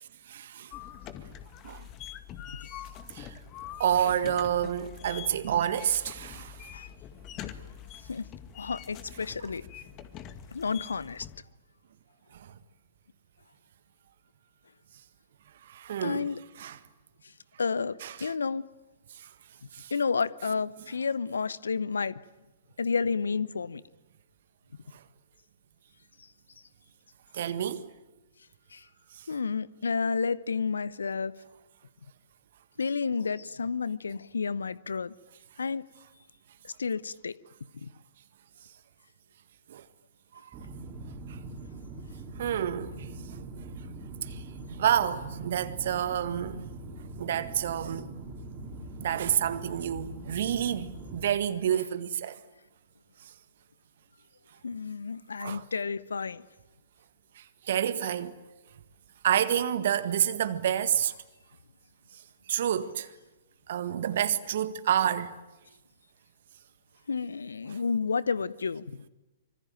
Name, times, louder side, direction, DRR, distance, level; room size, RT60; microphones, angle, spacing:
voice 1, 0.3-0.7 1.6-1.9 3.1-3.3 3.8-6.7 12.3-12.5 15.6-16.3 16.6-16.8 18.0-18.3 19.2-19.3 19.7-19.9 24.9-25.0 27.3-27.9 29.2-29.3 39.7-39.8 41.3-41.4 42.4-43.1 44.2-44.4 44.8-46.7 47.2-48.1 49.0-52.4 55.4-55.6 57.4-58.3 59.2-61.1 62.5-63.1 63.7-65.3, right 10 dB, 55° right, 1.7 m, -29 dB
sound 1, 0.7-11.4, left 9 dB, 30° left, 2.0 m, -44 dB
voice 2, 8.5-9.7 10.5-11.3 16.0-16.4 17.2-17.3 17.6-18.6 19.9-22.2 22.8-23.8 26.2-26.3 28.7-28.9 29.3-31.3 32.8-35.1 35.6-35.8 36.6-37.4 37.7-37.9 54.6-56.5 67.1-69.0, left 5 dB, 75° left, 0.9 m, -31 dB
sound 2, 40.5-51.3, right 2 dB, 25° right, 3.9 m, -42 dB
25.5 x 24.5 x 9.2 m
figure-of-eight pair, 115°, 0 cm